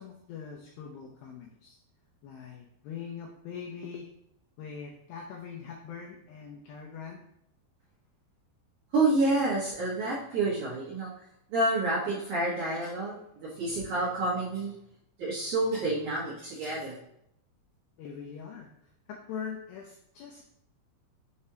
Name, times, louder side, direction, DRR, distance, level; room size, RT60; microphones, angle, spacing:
voice 1, 0.0-1.8 2.2-4.1 4.6-7.2 18.0-18.7 19.1-20.4, left 7 dB, 85° left, 0 dB, 2.2 m, -42 dB
voice 2, 8.9-11.1 11.5-14.7 15.2-17.0, right 2 dB, 65° right, -9 dB, 2.0 m, -28 dB
7.0 x 5.1 x 2.8 m, 0.76 s
omnidirectional pair, 5.3 m